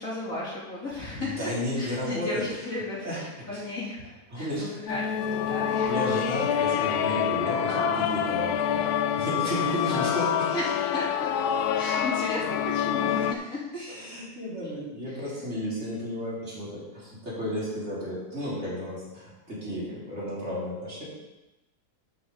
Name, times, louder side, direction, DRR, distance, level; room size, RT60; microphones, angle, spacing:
voice 1, 0.0-4.0 4.4-5.9 7.7-8.2 10.5-13.6, left 2 dB, 60° left, -8 dB, 3.5 m, -35 dB
voice 2, 1.1-2.3 3.0-3.6 4.3-5.0 5.4-5.6 5.9-8.9 9.2-10.5 13.8-21.0, equal, 45° right, -9 dB, 4.0 m, -33 dB
sound 1, 4.9-13.3, left 9 dB, 75° left, 1.1 m, -27 dB
12.0 x 6.0 x 3.9 m, 1.0 s
omnidirectional pair, 1.7 m